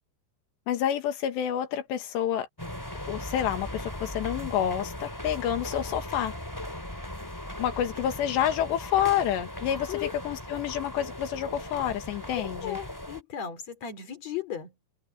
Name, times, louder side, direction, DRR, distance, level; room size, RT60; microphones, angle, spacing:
voice 1, 0.7-2.5 3.1-6.3 7.6-12.8, left 10 dB, 85° left, 3.8 m, -28 dB
sound 1, 2.6-13.2, left 1 dB, 5° left, 2.4 m, -38 dB
voice 2, 12.4-14.7, left 9 dB, 40° left, 5.2 m, -36 dB
omnidirectional pair, 4.9 m